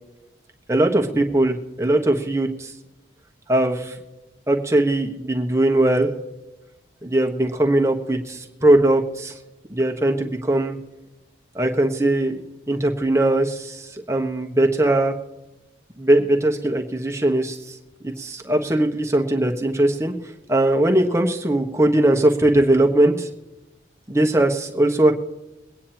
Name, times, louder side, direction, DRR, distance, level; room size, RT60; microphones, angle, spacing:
voice 1, 0.7-2.7 3.5-4.0 4.5-6.1 7.0-9.4 9.7-10.8 11.5-15.2 16.0-17.8 18.0-20.1 20.5-23.3 24.1-25.1, right 1 dB, 15° right, 2 dB, 1.3 m, -20 dB
23.0 x 9.7 x 3.0 m, 1.0 s
head